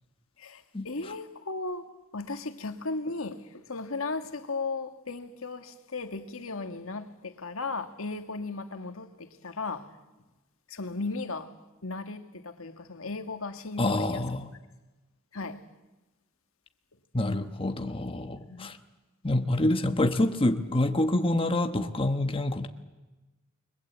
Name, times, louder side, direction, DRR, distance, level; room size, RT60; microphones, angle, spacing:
voice 1, 0.4-1.8 2.1-9.9 10.7-11.5 11.8-14.2 15.3-15.6 18.5-18.8, left 3 dB, 80° left, 1.9 m, -36 dB
voice 2, 13.8-14.5 17.1-18.8 19.2-22.7, left 1 dB, 25° left, 1.2 m, -27 dB
29.5 x 22.0 x 8.3 m
head